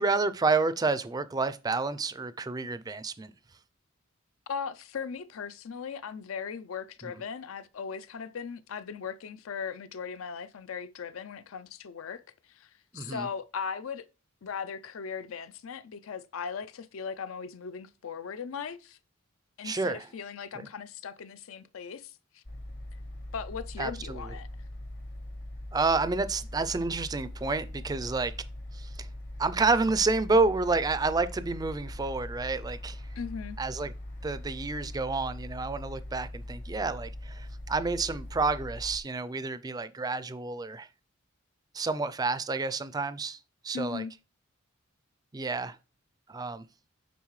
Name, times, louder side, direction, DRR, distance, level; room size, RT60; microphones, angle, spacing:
voice 1, 0.0-3.3 12.9-13.3 19.6-20.1 23.8-24.2 25.7-28.3 28.7-29.1 29.4-33.0 33.6-33.9 34.2-40.9 41.7-43.4 43.6-44.0 45.3-45.8 46.3-46.6, right 3 dB, 20° right, 0.3 m, -29 dB
voice 2, 4.5-12.2 12.5-14.0 14.4-19.0 19.6-22.4 23.3-24.5 33.2-33.6 43.7-44.1, left 6 dB, 80° left, 0.5 m, -38 dB
sound 1, 22.4-39.0, left 1 dB, 40° left, 0.8 m, -41 dB
9.3 x 4.0 x 3.1 m
head